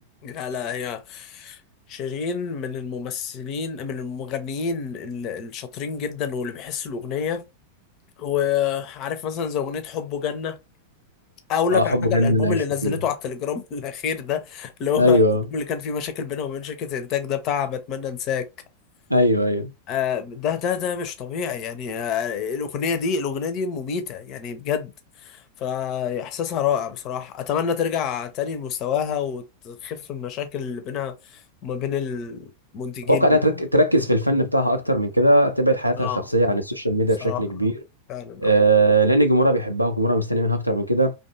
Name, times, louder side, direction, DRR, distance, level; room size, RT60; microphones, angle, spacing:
voice 1, 0.2-1.6 1.9-7.4 8.2-10.6 11.5-15.2 15.5-18.5 19.9-24.9 25.2-33.4 36.0-36.3 37.2-37.4 38.1-38.5, left 7 dB, 40° left, 0.5 m, -28 dB
voice 2, 11.7-12.9 15.0-15.4 19.1-19.7 33.1-37.7 38.4-41.1, right 1 dB, 90° right, 0.4 m, -19 dB
2.5 x 2.3 x 2.6 m
figure-of-eight pair, 90°, 0 cm